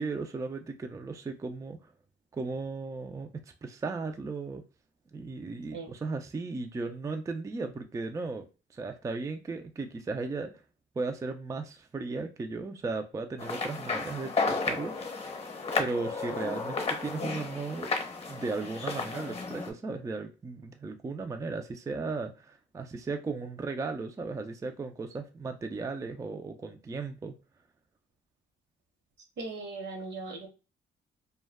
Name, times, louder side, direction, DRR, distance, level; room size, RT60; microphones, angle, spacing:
voice 1, 0.0-1.9 2.3-4.6 5.1-10.6 11.0-15.2 15.8-17.9 18.3-27.3, right 3 dB, 15° right, 0.3 m, -36 dB
sound 1, 13.4-19.7, left 4 dB, 30° left, 0.8 m, -33 dB
voice 2, 29.4-30.5, right 3 dB, 65° right, 0.9 m, -38 dB
2.1 x 2.1 x 3.4 m
cardioid pair, 90°, 20 cm